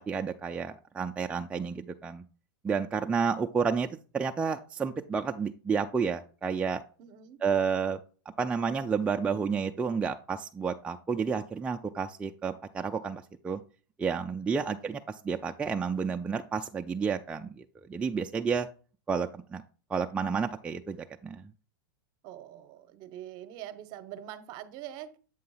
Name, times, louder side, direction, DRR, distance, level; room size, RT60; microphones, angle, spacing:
voice 1, 0.1-2.2 2.6-6.8 7.4-8.0 8.4-13.6 14.0-18.7 19.1-19.6 19.9-21.0 21.2-21.4, right 5 dB, 10° right, 0.3 m, -30 dB
voice 2, 7.0-7.4 14.8-15.0 22.2-25.2, right 11 dB, 40° right, 0.8 m, -44 dB
7.7 x 2.8 x 5.5 m
hypercardioid pair, 130°, 11 cm